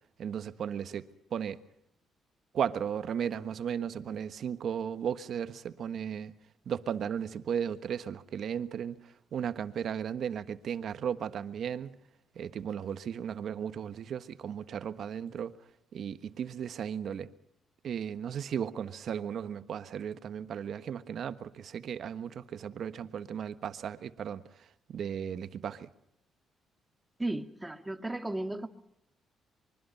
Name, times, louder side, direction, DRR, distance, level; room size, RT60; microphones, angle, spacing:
voice 1, 0.2-1.6 2.5-6.4 6.6-12.0 12.3-15.5 15.9-17.3 17.8-25.9, right 8 dB, 65° right, 1.4 m, -35 dB
voice 2, 27.2-28.7, right 2 dB, 10° right, 2.1 m, -34 dB
25.5 x 23.5 x 5.6 m
cardioid pair, 90°, 0 cm